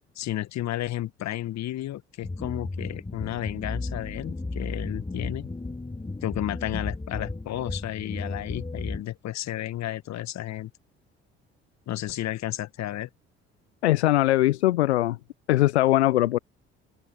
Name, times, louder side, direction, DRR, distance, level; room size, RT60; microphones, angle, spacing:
voice 1, 0.1-5.5 6.2-10.7 11.9-13.1, left 13 dB, 55° left, 1.8 m, -32 dB
sound 1, 2.2-9.0, left 2 dB, 15° left, 3.7 m, -34 dB
voice 2, 13.8-15.2 15.5-16.4, left 15 dB, 80° left, 0.9 m, -21 dB
open air
figure-of-eight pair, 50°, 32 cm